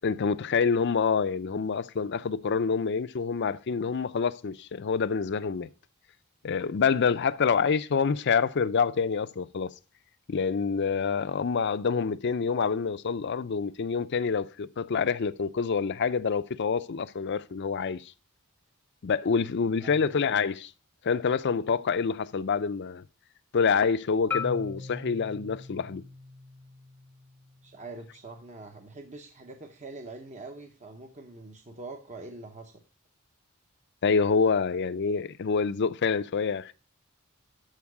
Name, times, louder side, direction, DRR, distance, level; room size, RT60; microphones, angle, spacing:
voice 1, 0.0-5.7 6.4-9.7 10.3-18.0 19.0-20.7 21.0-23.0 23.5-26.0 34.0-36.7, left 5 dB, 55° left, 0.5 m, -27 dB
voice 2, 19.8-20.1 27.6-32.8, right 3 dB, 35° right, 0.8 m, -44 dB
Marimba xylophone, 24.3-28.5, left 5 dB, 10° left, 0.7 m, -40 dB
13.0 x 4.7 x 4.7 m
head